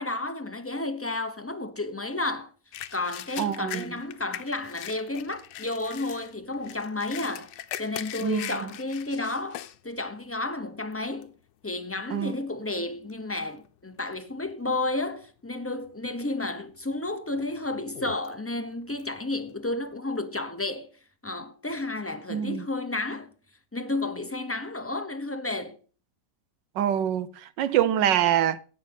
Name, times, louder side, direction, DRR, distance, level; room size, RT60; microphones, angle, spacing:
voice 1, 0.0-2.5 2.9-7.5 7.8-11.3 11.6-20.9 21.2-23.3 23.7-25.8, left 2 dB, 15° left, 0.5 m, -32 dB
sound 1, 2.7-9.8 10.3-10.4 10.9-11.3 12.0-12.2 12.5-13.7 14.0-14.5 14.9-15.0 15.9-16.4 16.8-19.9, left 12 dB, 85° left, 1.4 m, -41 dB
voice 2, 3.4-4.0 8.2-8.7 12.1-12.4 22.3-22.7 26.8-28.6, right 10 dB, 85° right, 1.4 m, -25 dB
17.0 x 6.3 x 5.5 m
omnidirectional pair, 1.9 m